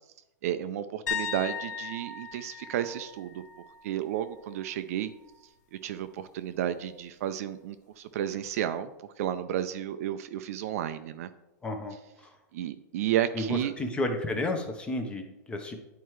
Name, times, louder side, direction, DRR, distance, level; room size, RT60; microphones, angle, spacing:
voice 1, 0.4-3.4 3.8-5.1 5.7-11.3 12.5-13.7, right 11 dB, 50° right, 11 dB, 0.4 m, -32 dB
sound 1, 1.1-4.8 5.1-5.5 8.4-8.5, left 6 dB, 75° left, 1.0 m, -38 dB
voice 2, 11.6-11.9 13.4-15.8, left 2 dB, 10° left, 5 dB, 0.7 m, -31 dB
9.2 x 4.5 x 3.1 m, 0.94 s
hypercardioid pair, 150°, 10 cm